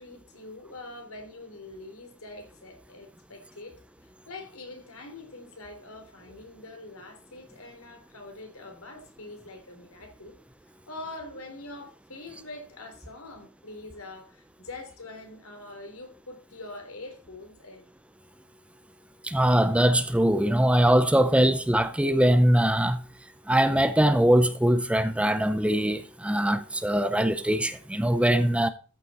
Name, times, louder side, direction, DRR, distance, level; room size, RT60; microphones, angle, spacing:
voice 1, 0.0-10.4 10.9-17.8, left 2 dB, 75° left, 3.3 m, -44 dB
voice 2, 19.2-23.0 23.5-28.7, right 1 dB, 5° right, 0.5 m, -22 dB
13.5 x 6.8 x 4.2 m
head